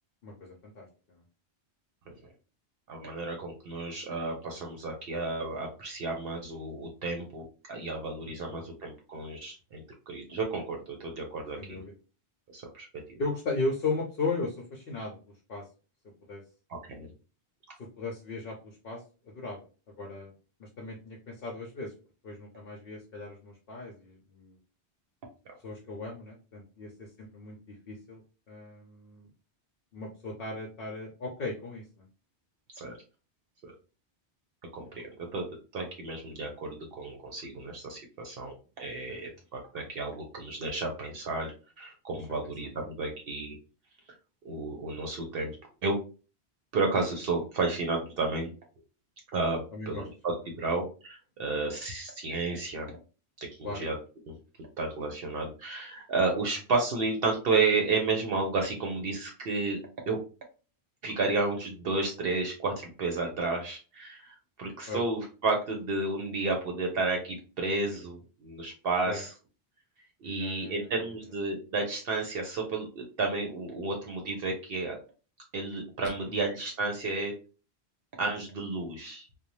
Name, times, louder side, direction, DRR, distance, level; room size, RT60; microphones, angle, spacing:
voice 1, 0.2-1.2 3.7-3.8 8.5-8.6 11.6-11.9 13.2-15.2 15.5-15.6 16.3-16.4 17.8-19.0 19.3-19.6 20.0-20.3 20.6-21.9 22.2-24.6 25.6-28.2 28.5-29.3 29.9-32.1 34.8-35.1 39.1-39.3 42.8-42.9 49.7-50.0 53.6-53.8 64.9-65.0 69.1-69.2 70.2-70.9 76.3-76.4, left 3 dB, 60° left, 0 dB, 0.8 m, -37 dB
voice 2, 2.9-11.8 12.5-13.2 16.7-17.1 32.8-33.0 33.6-33.7 34.7-35.5 35.7-43.5 44.4-45.6 45.8-46.0 46.7-48.5 49.3-53.0 53.6-54.0 54.3-54.4 54.8-59.8 60.1-60.2 61.0-69.3 70.2-75.0 75.5-77.4 78.2-79.3, right 3 dB, 65° right, 2 dB, 0.7 m, -32 dB
2.6 x 2.1 x 3.0 m, 0.35 s
omnidirectional pair, 1.1 m